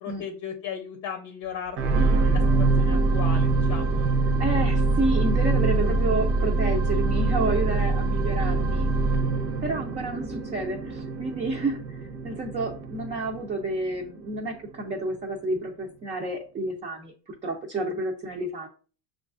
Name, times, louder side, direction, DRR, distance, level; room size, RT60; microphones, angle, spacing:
voice 1, 0.0-4.1, left 7 dB, 45° left, 5 dB, 0.7 m, -37 dB
sound 1, 1.8-14.2 14.7-14.8, right 3 dB, 70° right, 0.8 m, -24 dB
voice 2, 4.3-8.9 9.6-18.7, right 2 dB, 20° right, 0 dB, 0.4 m, -30 dB
6.0 x 2.3 x 2.4 m, 0.38 s
cardioid pair, 145°, 37 cm